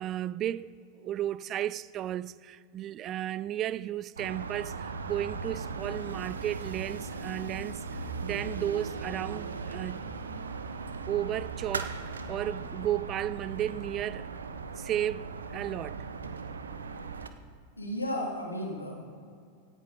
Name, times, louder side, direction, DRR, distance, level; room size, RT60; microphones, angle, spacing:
voice 1, 0.0-10.0 11.1-12.0 12.3-14.3 14.8-16.1, right 12 dB, 30° right, 0.3 m, -34 dB
sound 1, 4.2-17.3, right 4 dB, 70° right, 0.8 m, -38 dB
voice 2, 17.8-18.9, left 1 dB, 85° left, 2.6 m, -33 dB
17.0 x 10.0 x 4.2 m
figure-of-eight pair, 90°, 0 cm